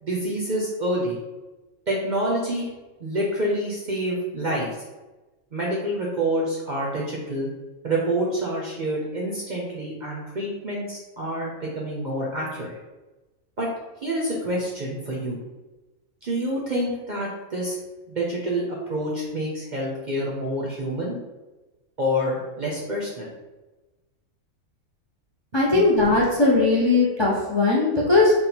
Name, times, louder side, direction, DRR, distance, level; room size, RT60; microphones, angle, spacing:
voice 1, 0.0-1.2 1.9-2.7 3.0-4.7 5.5-7.5 7.8-12.8 13.6-13.7 14.0-15.4 16.2-17.8 18.1-21.2 22.0-23.3 25.7-25.8, right 1 dB, 50° right, -4 dB, 0.6 m, -27 dB
voice 2, 25.5-28.3, left 3 dB, 35° left, -4 dB, 0.4 m, -19 dB
3.6 x 2.3 x 4.3 m, 1.1 s
omnidirectional pair, 1.4 m